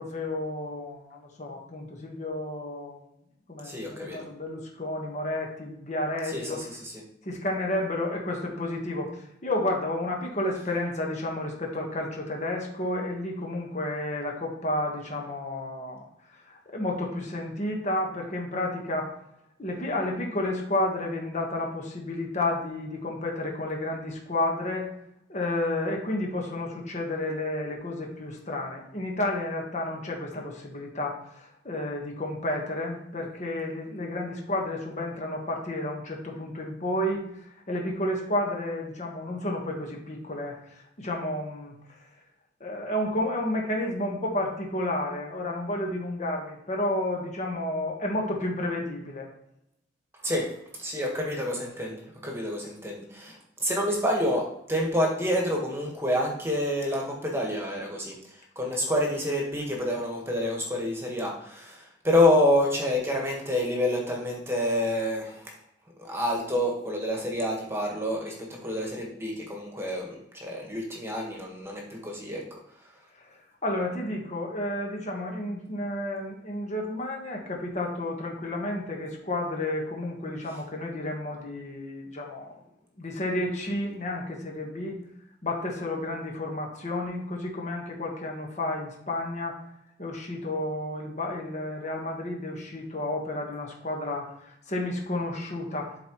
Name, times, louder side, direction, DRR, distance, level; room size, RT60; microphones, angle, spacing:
voice 1, 0.0-3.0 3.5-6.7 7.2-16.0 16.4-19.1 19.6-24.9 25.3-41.7 42.6-49.3 73.1-73.3 73.6-82.6 83.0-85.0 85.4-89.6 90.0-96.0, left 1 dB, 40° left, 0 dB, 1.4 m, -31 dB
voice 2, 3.6-4.2 6.3-6.9 50.2-50.5 50.8-65.5 66.0-68.3 68.6-72.6, left 1 dB, 15° right, -1 dB, 1.5 m, -28 dB
11.5 x 4.3 x 3.1 m, 0.80 s
head